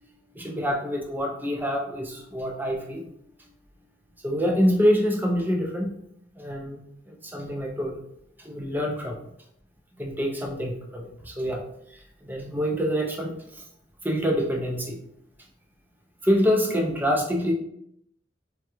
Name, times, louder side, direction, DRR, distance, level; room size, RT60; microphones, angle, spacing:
voice 1, 0.4-3.1 4.2-5.9 6.4-6.8 7.1-8.0 8.4-9.2 10.0-11.6 11.9-13.4 14.0-15.0 16.2-17.5, equal, 10° right, 1 dB, 0.4 m, -26 dB
3.4 x 2.2 x 2.9 m, 0.73 s
head